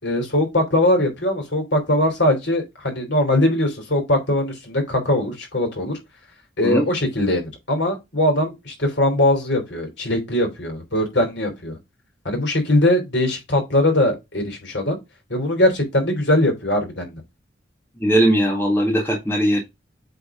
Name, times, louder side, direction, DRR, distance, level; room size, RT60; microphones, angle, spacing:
voice 1, 0.0-5.9 6.6-11.8 12.2-15.0 15.3-17.2, left 1 dB, 65° left, 3.2 m, -21 dB
voice 2, 18.0-19.6, right 1 dB, 10° left, 1.6 m, -19 dB
8.3 x 3.9 x 3.7 m
head